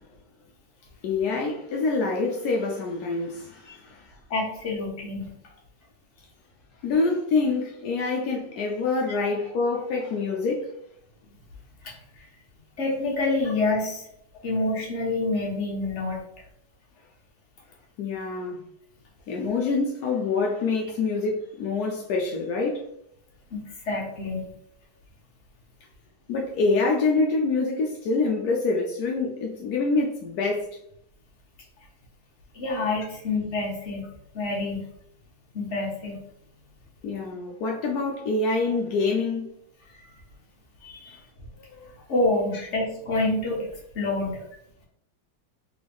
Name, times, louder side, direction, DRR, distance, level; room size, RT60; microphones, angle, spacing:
voice 1, 1.0-4.1 6.8-10.7 14.3-14.4 18.0-18.6 19.3-22.8 26.3-30.7 37.0-39.5 41.1-41.2 41.8-41.9 42.5-42.7, left 3 dB, 75° left, 0.8 m, -26 dB
voice 2, 4.3-5.3 11.8-11.9 12.2-12.3 12.8-14.0 14.4-16.2 23.5-24.5 32.5-34.1 34.3-34.9 35.5-36.2 40.8-41.2 42.1-43.7 43.9-44.4, left 2 dB, 40° left, 1.2 m, -27 dB
3.8 x 3.4 x 3.4 m
omnidirectional pair, 2.3 m